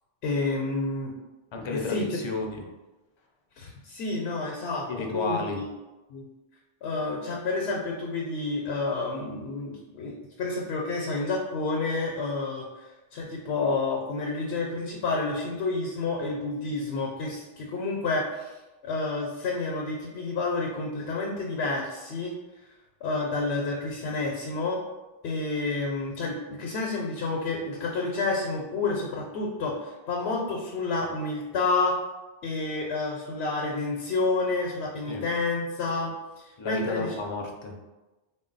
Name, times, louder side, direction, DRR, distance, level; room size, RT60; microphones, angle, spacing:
voice 1, 0.2-1.1 1.7-2.2 3.6-5.7 6.1-6.3 6.8-22.3 23.0-24.8 25.2-32.0 32.4-37.1, left 3 dB, 85° left, -1 dB, 0.8 m, -29 dB
voice 2, 1.5-2.6 4.9-5.6 35.1-35.2 36.6-37.9, left 3 dB, 50° left, 2 dB, 0.3 m, -32 dB
3.6 x 2.2 x 3.8 m, 1.1 s
omnidirectional pair, 1.1 m